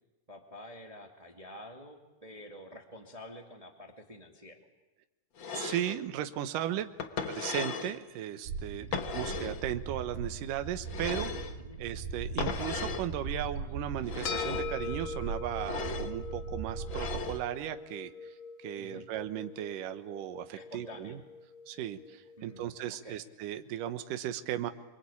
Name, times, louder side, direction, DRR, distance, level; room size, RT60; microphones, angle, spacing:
voice 1, 0.3-4.6 8.8-9.1 11.6-11.8 18.7-19.1 20.5-21.2 22.4-22.7 23.0-23.2, left 1 dB, 15° right, 2 dB, 1.3 m, -48 dB
sound 1, 5.4-6.0 7.0-8.0 8.9-9.6 10.9-11.6 12.4-13.1 14.0-14.7 15.6-16.1 16.9-17.4, left 5 dB, 75° left, 1.1 m, -36 dB
voice 2, 5.5-6.9 7.3-11.5 11.8-21.2 21.7-24.7, right 11 dB, 70° right, 8 dB, 2.5 m, -36 dB
sound 2, 8.4-17.4, right 5 dB, 85° right, 3.7 m, -39 dB
sound 3, 14.2-22.8, left 5 dB, 45° left, 1.9 m, -42 dB
27.0 x 23.5 x 8.5 m, 1.1 s
omnidirectional pair, 4.3 m